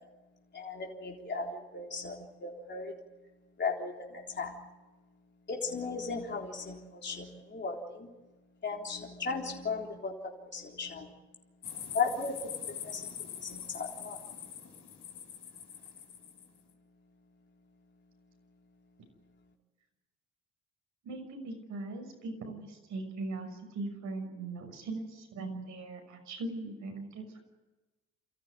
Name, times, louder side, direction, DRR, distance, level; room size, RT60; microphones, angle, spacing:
voice 1, 0.5-3.0 3.6-4.7 5.5-8.1 8.6-11.1 11.9-14.2, left 4 dB, 35° left, -1 dB, 3.8 m, -36 dB
sound 1, 11.6-16.5, left 9 dB, 85° left, 5.2 m, -43 dB
voice 2, 21.0-27.4, right 2 dB, 75° right, 5 dB, 6.3 m, -40 dB
29.0 x 14.5 x 9.8 m, 1.2 s
cardioid pair, 90°, 30 cm